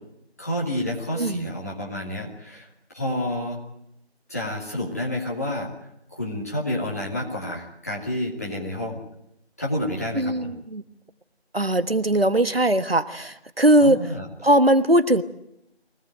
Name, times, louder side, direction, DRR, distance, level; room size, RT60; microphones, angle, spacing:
voice 1, 0.4-2.7 2.9-3.6 4.3-9.0 9.6-10.5 13.8-14.3, left 1 dB, 15° left, -4 dB, 2.7 m, -29 dB
voice 2, 1.2-1.5 10.1-10.8 11.5-14.1 14.4-15.2, right 1 dB, 60° right, 12 dB, 1.5 m, -20 dB
24.5 x 18.5 x 9.3 m, 0.79 s
figure-of-eight pair, 170°, 33 cm